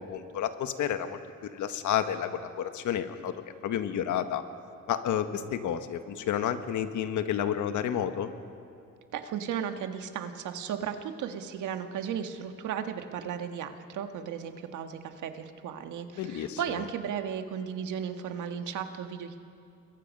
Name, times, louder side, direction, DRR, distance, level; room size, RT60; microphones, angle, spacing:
voice 1, 0.1-3.3 3.6-4.4 4.9-8.3 16.2-16.6, left 9 dB, 75° left, 8 dB, 1.4 m, -30 dB
voice 2, 9.1-19.4, right 8 dB, 80° right, 6 dB, 1.6 m, -35 dB
29.5 x 22.0 x 5.5 m, 2.5 s
cardioid pair, 90°, 30 cm